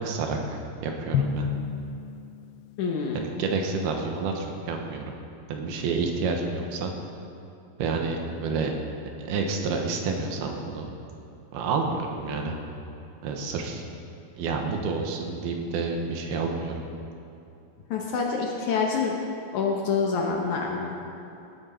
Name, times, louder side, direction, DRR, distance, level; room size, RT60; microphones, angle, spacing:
voice 1, 0.0-1.4 3.1-5.1 5.5-6.9 7.8-8.7 9.2-10.9 11.5-12.5 13.2-13.8 14.4-16.8, right 4 dB, 85° right, 2 dB, 3.1 m, -29 dB
Drum, 1.1-2.9, left 6 dB, 85° left, 2.5 m, -29 dB
voice 2, 2.8-3.2 17.9-19.1 19.5-21.0, left 5 dB, 70° left, 0 dB, 2.0 m, -26 dB
17.5 x 9.4 x 4.4 m, 2.8 s
omnidirectional pair, 4.4 m